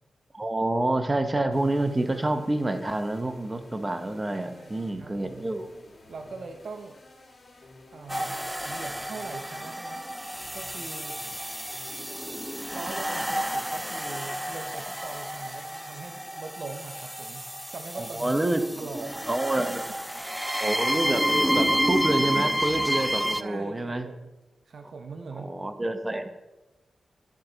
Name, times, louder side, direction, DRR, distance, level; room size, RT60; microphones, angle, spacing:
voice 1, 0.3-5.7 17.9-18.6 19.3-19.8 20.6-21.2 21.5-24.1 25.4-26.4, right 2 dB, 30° right, 8 dB, 0.9 m, -28 dB
sound 1, 1.5-12.4, left 2 dB, 60° left, 2.8 m, -52 dB
voice 2, 4.3-5.4 6.1-7.0 7.9-8.4 8.6-10.0 10.5-11.2 12.7-19.3 19.6-19.8 20.1-20.4 23.4-24.3 24.7-25.6, right 4 dB, 70° right, 6 dB, 0.6 m, -42 dB
sound 2, 8.1-23.4, equal, 5° right, 0.4 m, -30 dB
12.0 x 4.3 x 3.9 m, 1.0 s
supercardioid pair, 40°, 0 cm